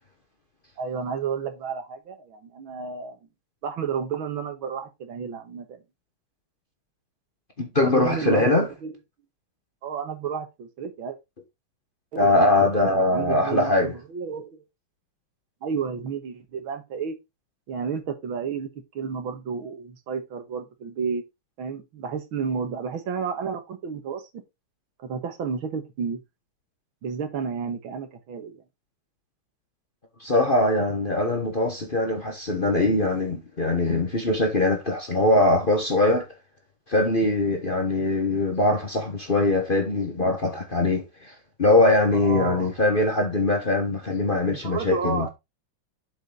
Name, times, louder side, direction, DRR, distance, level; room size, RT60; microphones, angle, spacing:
voice 1, 0.8-3.2 3.6-5.8 7.8-9.0 9.8-11.2 12.1-14.6 15.6-17.1 17.7-18.7 18.9-21.2 21.6-24.2 25.0-26.2 27.0-28.6 42.1-42.7 44.6-45.3, right 6 dB, 70° right, 2.2 m, -31 dB
voice 2, 7.6-8.7 12.2-13.9 30.2-36.3 36.9-45.3, left 2 dB, 30° left, 1.2 m, -22 dB
7.4 x 5.3 x 3.9 m
omnidirectional pair, 2.3 m